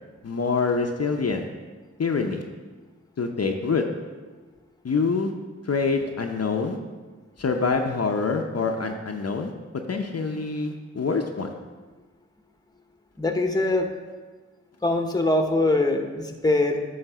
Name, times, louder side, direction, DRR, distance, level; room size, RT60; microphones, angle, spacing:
voice 1, 0.2-1.5 2.0-2.4 3.2-3.8 4.8-5.3 5.7-6.8 7.4-9.5 9.9-11.5, left 4 dB, 60° left, 3 dB, 0.7 m, -25 dB
voice 2, 13.2-13.9 14.8-16.8, left 2 dB, 15° left, 4 dB, 0.9 m, -23 dB
9.1 x 3.3 x 6.7 m, 1.3 s
cardioid pair, 45°, 29 cm